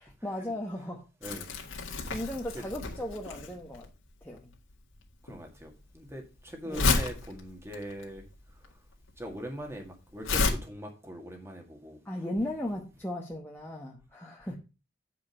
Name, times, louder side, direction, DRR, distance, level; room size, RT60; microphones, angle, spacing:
voice 1, 0.2-1.0 2.0-3.9 4.2-4.5 6.6-6.8 12.0-14.6, left 1 dB, 10° left, -2 dB, 1.0 m, -36 dB
Crumpling crinkling, 1.2-10.5, left 3 dB, 90° left, 1.9 m, -32 dB
voice 2, 1.2-1.5 2.5-2.6 5.2-8.2 9.2-12.2, equal, 15° right, 3 dB, 1.9 m, -41 dB
8.2 x 5.1 x 5.4 m, 0.30 s
head